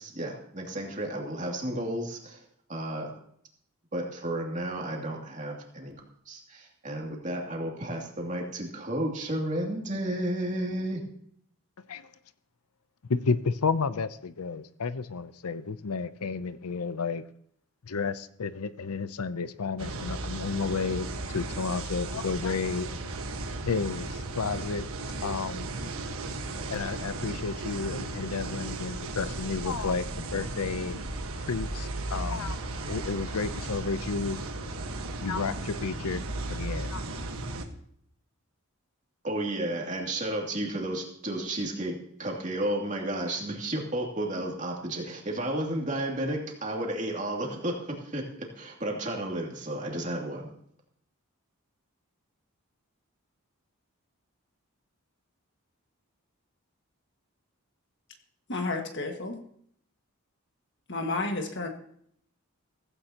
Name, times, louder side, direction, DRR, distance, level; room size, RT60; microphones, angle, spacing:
voice 1, 0.0-2.4 2.7-3.2 3.9-11.1 39.2-50.5, right 1 dB, 35° right, 2.6 m, -32 dB
voice 2, 13.1-17.2 17.8-22.9 23.7-24.9 25.2-25.7 26.7-31.1 31.5-32.6 32.9-34.4 35.2-36.2 36.5-37.3, left 4 dB, 85° left, 0.6 m, -31 dB
sound 1, 19.8-37.6, right 2 dB, 70° right, 1.4 m, -35 dB
voice 3, 58.5-59.4 60.9-61.7, left 3 dB, 50° left, 1.7 m, -31 dB
15.5 x 15.5 x 2.9 m
head